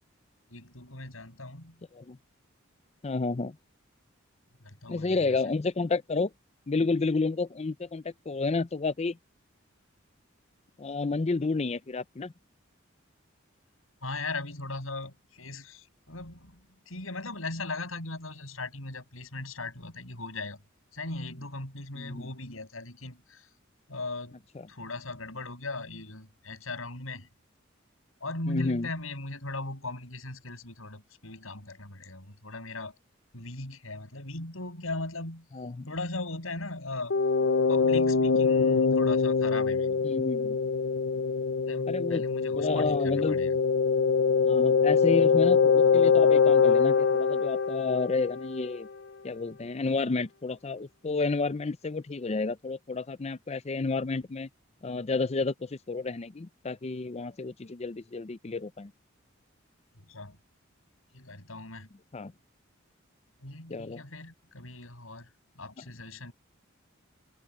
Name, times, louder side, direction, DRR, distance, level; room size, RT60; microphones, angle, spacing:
voice 1, 0.5-1.8 4.6-5.3 14.0-20.6 20.9-23.5 23.9-24.4 24.7-27.3 28.2-33.0 33.3-35.5 35.9-37.1 37.7-40.1 41.7-43.6 60.1-60.4 61.1-61.9 63.4-65.3 65.6-66.3, left 2 dB, 85° left, 7.3 m, -38 dB
voice 2, 3.0-3.6 4.9-6.3 6.7-9.2 10.8-12.3 22.0-22.3 28.5-28.9 35.5-35.9 40.0-40.6 41.9-42.2 42.5-43.4 44.4-48.9 49.2-54.5 54.8-58.9 62.1-62.3 63.7-64.0 65.8-65.9, left 3 dB, 30° left, 0.5 m, -30 dB
sound 1, 37.1-48.7, left 5 dB, 70° left, 0.7 m, -24 dB
open air
head